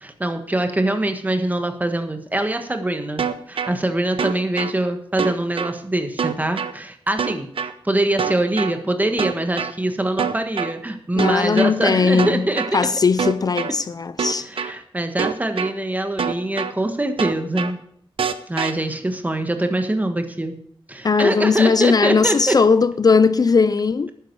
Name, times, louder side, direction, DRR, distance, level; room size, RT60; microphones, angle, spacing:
voice 1, 0.0-7.5 7.8-12.6 14.5-17.8 18.5-20.6 20.9-22.6, right 1 dB, 15° right, 1.4 m, -23 dB
sound 1, 3.2-3.7 4.2-4.7 5.2-5.7 6.2-6.7 7.2-7.7 8.2-8.7 9.2-9.7 10.2-10.7 11.2-11.7 12.2-12.7 13.2-13.7 14.2-14.7 15.2-15.7 16.2-16.7 17.2-17.7 18.2-18.7, right 6 dB, 75° right, 0.8 m, -24 dB
voice 2, 11.2-12.5 12.7-14.5 21.0-24.1, left 5 dB, 45° left, 0.4 m, -18 dB
12.0 x 9.8 x 4.7 m
wide cardioid pair, 115°, 9 cm